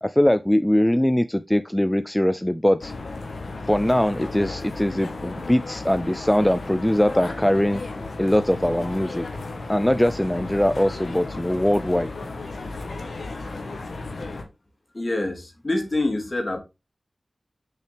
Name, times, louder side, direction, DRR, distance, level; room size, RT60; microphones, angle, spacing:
voice 1, 0.0-2.9 3.7-7.8 8.2-9.3 9.7-12.1, left 1 dB, 10° left, 0.5 m, -21 dB
sound 1, 2.8-14.4, left 3 dB, 90° left, 1.5 m, -34 dB
voice 2, 14.9-16.6, left 2 dB, 45° left, 2.6 m, -26 dB
6.4 x 5.7 x 3.4 m
cardioid pair, 45°, 0 cm